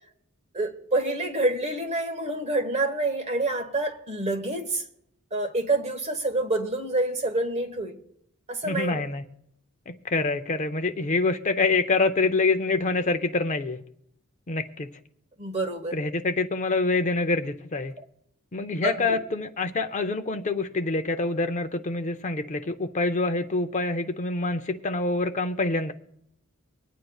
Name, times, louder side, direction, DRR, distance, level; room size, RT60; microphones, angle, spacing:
voice 1, 0.5-4.8 5.3-8.0 8.5-9.0 15.4-16.0 18.8-19.2, right 2 dB, 30° right, 1.3 m, -27 dB
voice 2, 8.6-9.2 9.9-13.8 14.5-14.9 15.9-17.9 18.5-25.9, left 3 dB, 35° left, 0.5 m, -26 dB
24.5 x 9.2 x 2.3 m
head